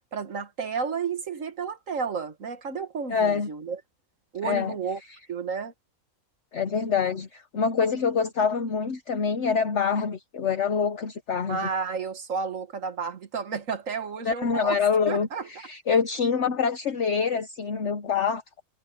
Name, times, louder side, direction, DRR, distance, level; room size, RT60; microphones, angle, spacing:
voice 1, 0.1-3.8 4.3-5.0 5.3-5.7 11.5-14.8 15.1-15.5, right 5 dB, 60° right, 1.9 m, -31 dB
voice 2, 3.1-3.5 4.4-4.7 6.5-11.6 14.2-18.4, left 6 dB, 55° left, 1.3 m, -25 dB
omnidirectional pair, 1.5 m